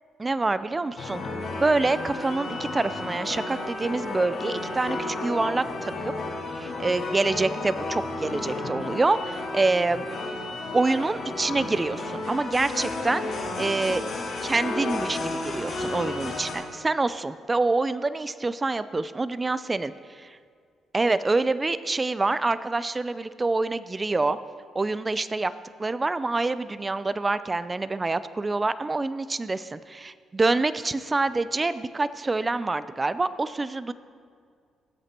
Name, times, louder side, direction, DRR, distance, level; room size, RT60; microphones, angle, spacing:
voice 1, 0.2-1.2 1.6-6.1 6.5-10.1 10.7-14.0 14.4-19.9 20.9-24.4 24.7-25.5 25.8-33.9, right 3 dB, 25° right, 14 dB, 0.5 m, -26 dB
sound 1, 1.0-16.5, left 2 dB, 60° left, 4.0 m, -32 dB
19.5 x 8.2 x 4.4 m, 2.1 s
cardioid pair, 90°, 0 cm